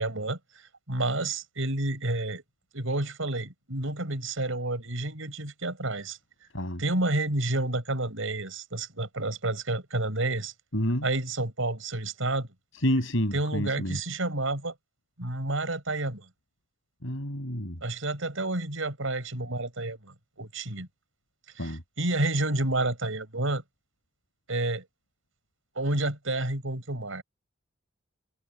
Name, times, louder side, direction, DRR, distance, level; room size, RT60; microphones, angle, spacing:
voice 1, 0.0-2.4 2.7-6.5 6.8-10.5 11.0-12.5 13.3-14.7 15.2-16.3 17.8-20.9 21.6-23.6 24.5-24.9 25.8-27.2, right 2 dB, 80° right, 5.5 m, -30 dB
voice 2, 10.7-11.1 12.8-14.0 17.0-17.8 21.6-21.8, equal, 70° left, 7.4 m, -29 dB
head